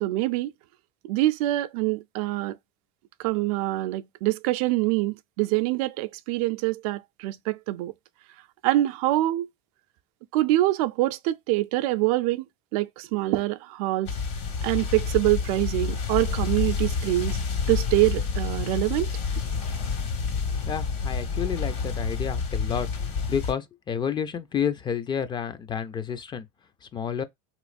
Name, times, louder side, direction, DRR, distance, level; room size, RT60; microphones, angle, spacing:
voice 1, 0.0-0.5 1.1-2.6 3.2-7.9 8.6-9.5 10.3-12.5 12.7-14.1 14.6-17.4 17.7-19.1, right 17 dB, 75° right, 0.4 m, -25 dB
sound 1, 14.1-23.5, left 5 dB, 60° left, 1.7 m, -29 dB
voice 2, 20.7-22.9 23.3-26.5 26.9-27.2, left 7 dB, 25° left, 0.4 m, -30 dB
3.3 x 3.0 x 2.4 m
supercardioid pair, 120°, 19 cm